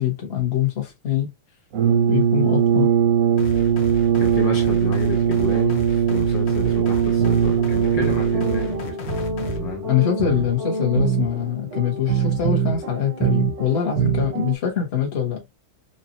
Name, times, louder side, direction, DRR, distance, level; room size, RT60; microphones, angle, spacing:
voice 1, 0.0-1.3 2.1-2.9 9.9-15.4, left 9 dB, 35° left, 1.3 m, -23 dB
Brass instrument, 1.7-8.9, right 8 dB, 85° right, 0.7 m, -20 dB
sound 1, 3.4-9.6, left 1 dB, 85° left, 1.7 m, -34 dB
voice 2, 4.2-9.0 9.5-9.9, left 6 dB, 65° left, 1.4 m, -31 dB
sound 2, 6.6-14.5, right 6 dB, 55° right, 0.8 m, -26 dB
4.1 x 3.0 x 2.6 m
omnidirectional pair, 2.4 m